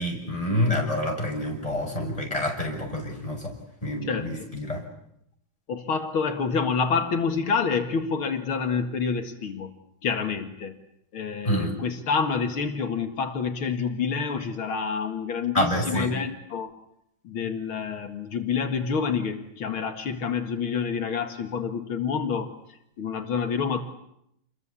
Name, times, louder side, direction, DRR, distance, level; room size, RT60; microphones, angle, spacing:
voice 1, 0.0-3.5 3.8-4.8 11.4-11.7 15.5-16.1, left 1 dB, 15° left, 1 dB, 6.8 m, -27 dB
voice 2, 5.7-9.7 10.0-10.7 11.1-16.7 17.2-22.5 23.0-23.8, left 5 dB, 85° left, 5 dB, 2.8 m, -28 dB
29.0 x 22.0 x 8.5 m, 0.77 s
omnidirectional pair, 2.3 m